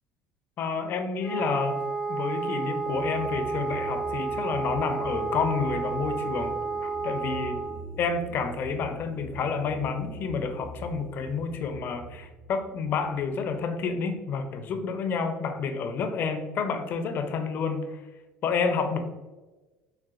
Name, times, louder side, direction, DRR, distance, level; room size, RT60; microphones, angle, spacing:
voice 1, 0.6-1.8 2.1-7.6 8.0-18.0 18.4-19.0, left 5 dB, 50° left, 7 dB, 0.4 m, -29 dB
Wind instrument woodwind instrument, 1.2-7.8, right 4 dB, 5° right, 0.5 m, -31 dB
sound 1, 2.8-14.1, right 1 dB, 50° right, 1.5 m, -43 dB
4.0 x 2.1 x 2.4 m, 1.2 s
supercardioid pair, 100°, 4 cm